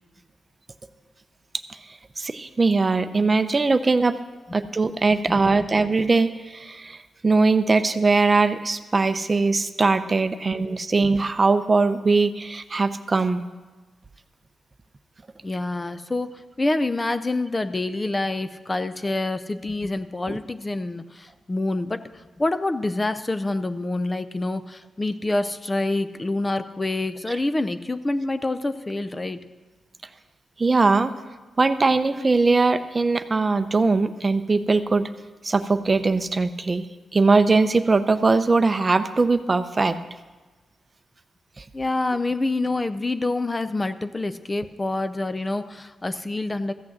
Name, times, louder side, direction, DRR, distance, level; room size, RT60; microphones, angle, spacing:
voice 1, 2.2-4.2 4.5-13.4 20.3-20.4 27.3-27.4 30.6-31.1 31.6-35.1 35.4-36.9 37.1-40.0 41.6-41.7, right 3 dB, 35° right, 10 dB, 0.6 m, -21 dB
voice 2, 15.4-29.4 41.7-46.7, left 2 dB, 25° left, 11 dB, 0.5 m, -27 dB
14.5 x 6.1 x 7.7 m, 1.3 s
cardioid pair, 90°, 0 cm